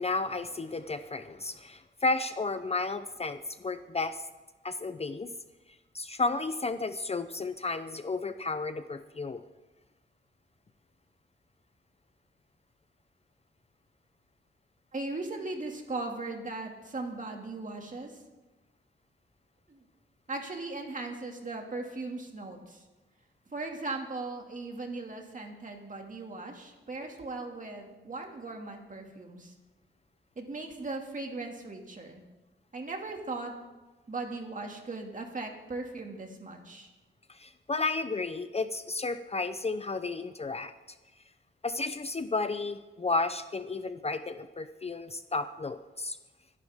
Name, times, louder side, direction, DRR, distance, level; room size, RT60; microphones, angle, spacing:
voice 1, 0.0-4.2 4.6-5.3 5.9-9.4 37.3-40.7 41.6-46.2, left 3 dB, 30° left, 10 dB, 0.6 m, -32 dB
voice 2, 14.9-18.2 19.7-19.8 20.3-22.8 23.5-29.5 30.4-32.2 32.7-33.5 34.1-36.9, right 3 dB, 40° right, 2 dB, 2.3 m, -38 dB
24.5 x 11.0 x 3.6 m, 1.2 s
wide cardioid pair, 120°, 20 cm